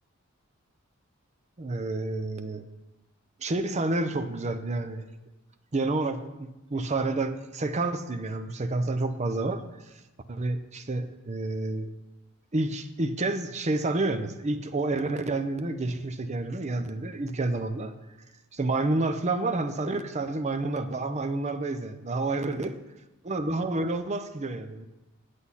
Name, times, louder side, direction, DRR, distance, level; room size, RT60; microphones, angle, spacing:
voice 1, 1.6-2.7 3.4-5.0 5.7-9.6 10.3-11.9 12.5-17.9 18.5-22.7 23.3-24.9, right 2 dB, 35° right, 9 dB, 0.6 m, -29 dB
8.2 x 8.1 x 5.7 m, 1.0 s
head